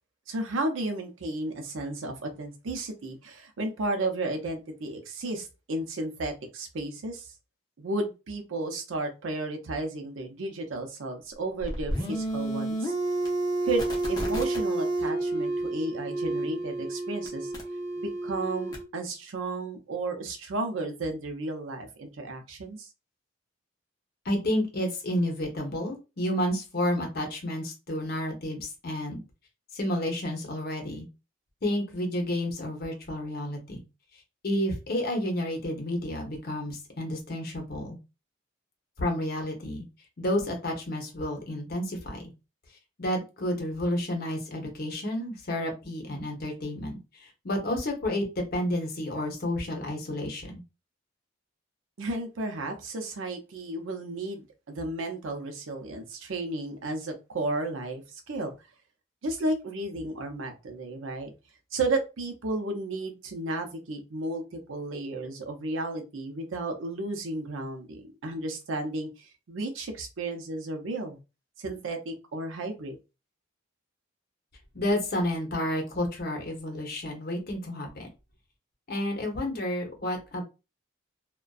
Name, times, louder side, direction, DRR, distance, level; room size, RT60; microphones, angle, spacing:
voice 1, 0.3-7.3 7.8-12.9 13.6-17.5 18.0-22.9 52.0-58.5 59.2-61.3 61.7-71.2 71.6-73.0, right 2 dB, 80° right, 4 dB, 0.6 m, -33 dB
sound 1, 11.6-18.8, right 2 dB, 20° left, 0.6 m, -30 dB
voice 2, 24.2-29.2 29.7-31.1 31.6-33.8 34.4-38.0 39.0-39.8 40.2-42.2 43.0-50.6 74.7-78.1 78.9-80.4, left 1 dB, 50° left, 2 dB, 0.7 m, -30 dB
2.5 x 2.2 x 2.3 m, 0.28 s
head